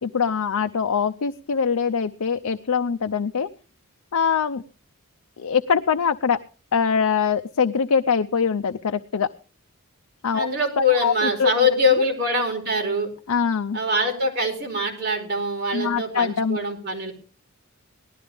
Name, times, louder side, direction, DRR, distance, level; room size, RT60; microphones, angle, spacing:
voice 1, 0.0-3.5 4.1-4.6 5.4-6.4 6.7-9.3 10.2-10.5 10.8-11.5 13.3-13.8 15.7-16.6, left 6 dB, 85° left, 7 dB, 0.6 m, -23 dB
voice 2, 10.3-13.1 13.7-17.1, left 2 dB, 45° right, 2 dB, 4.6 m, -23 dB
18.5 x 13.0 x 3.5 m, 0.38 s
head